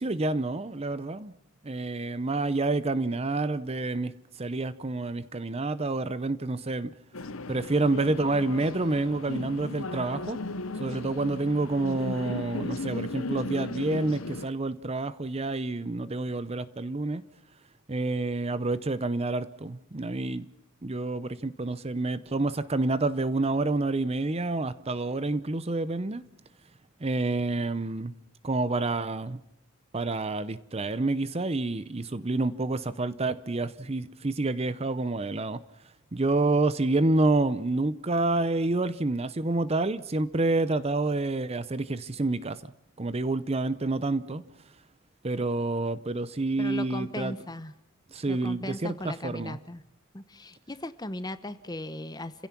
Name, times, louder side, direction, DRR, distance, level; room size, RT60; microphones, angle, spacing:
voice 1, 0.0-1.3 1.6-4.1 4.4-6.9 7.5-10.4 10.8-17.2 17.9-20.5 20.8-26.2 27.0-28.1 28.4-29.4 29.9-35.6 36.1-42.6 43.0-44.4 45.2-47.3 48.1-49.6, right 2 dB, 30° right, 15 dB, 0.7 m, -28 dB
sound 1, 7.1-14.5, left 2 dB, 80° left, 1.1 m, -36 dB
voice 2, 46.6-47.7 48.3-49.8 50.1-52.5, left 1 dB, 20° left, 12 dB, 0.9 m, -37 dB
30.0 x 16.5 x 5.9 m, 0.87 s
head